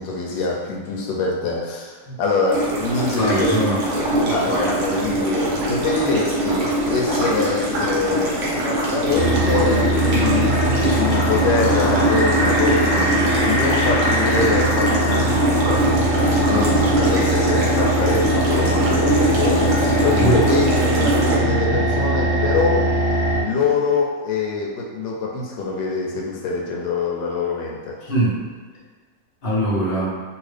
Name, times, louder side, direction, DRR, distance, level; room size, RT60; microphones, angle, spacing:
voice 1, 0.0-3.5 4.2-15.6 16.2-22.9 23.4-28.0, left 3 dB, 90° left, -2 dB, 1.3 m, -24 dB
sound 1, 2.5-21.4, right 1 dB, 55° right, 0.9 m, -23 dB
voice 2, 3.1-3.8 4.4-4.7 20.1-20.4 28.0-28.4 29.4-30.1, right 1 dB, 40° left, -8 dB, 1.0 m, -21 dB
sound 2, 9.1-23.4, right 1 dB, 70° left, 1.5 m, -20 dB
2.9 x 2.8 x 3.2 m, 1.5 s
omnidirectional pair, 2.0 m